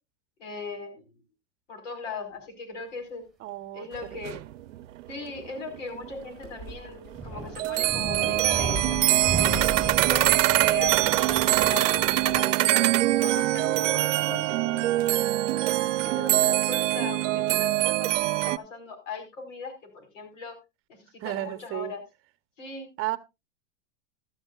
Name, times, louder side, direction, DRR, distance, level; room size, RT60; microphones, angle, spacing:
voice 1, 0.4-1.2 1.7-3.2 3.7-4.4 5.1-8.8 9.3-12.8 13.2-15.0 15.8-20.5 20.9-22.0 22.6-22.9, left 4 dB, 80° left, 4.7 m, -39 dB
voice 2, 3.4-4.4 21.2-21.9 23.0-23.2, right 16 dB, 35° right, 0.9 m, -33 dB
sound 1, 3.9-4.0 4.2-6.2 6.5-6.7 7.1-7.2 7.5-18.6, right 16 dB, 80° right, 0.6 m, -23 dB
sound 2, 5.9-11.1, left 1 dB, 40° left, 6.1 m, -40 dB
sound 3, 7.1-12.4, right 3 dB, ahead, 3.7 m, -36 dB
14.5 x 13.0 x 2.4 m
supercardioid pair, 125°, 37 cm